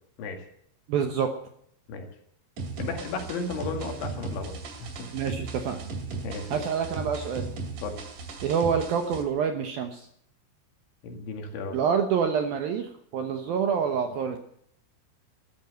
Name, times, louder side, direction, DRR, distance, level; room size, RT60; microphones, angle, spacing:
voice 1, 0.9-1.3 5.1-5.9 6.5-7.5 8.4-10.1 11.7-14.4, right 7 dB, 75° right, 6 dB, 2.1 m, -27 dB
sound 1, 2.6-9.2, right 4 dB, 50° right, 3.3 m, -37 dB
voice 2, 2.8-5.1 6.1-6.7 7.8-8.0 11.0-11.8, left 4 dB, 70° left, 4 dB, 4.4 m, -35 dB
13.5 x 13.0 x 7.7 m, 0.66 s
omnidirectional pair, 5.9 m